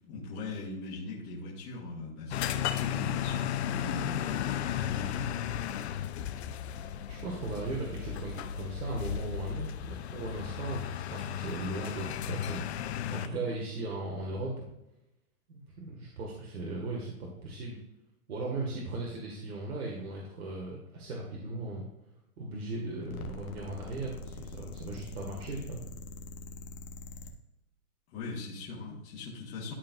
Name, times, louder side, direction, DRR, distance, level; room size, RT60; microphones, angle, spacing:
voice 1, 0.0-5.8 28.1-29.7, left 3 dB, 30° left, -6 dB, 1.9 m, -40 dB
sound 1, 2.3-13.3, left 10 dB, 50° left, 0.5 m, -34 dB
voice 2, 7.1-12.6 13.1-14.7 15.5-17.8 18.3-21.9 22.4-25.8, right 2 dB, 75° right, -2 dB, 1.9 m, -37 dB
sound 2, 23.0-27.3, left 2 dB, 70° left, 1.4 m, -44 dB
12.0 x 4.6 x 2.5 m, 0.89 s
hypercardioid pair, 145°, 45 cm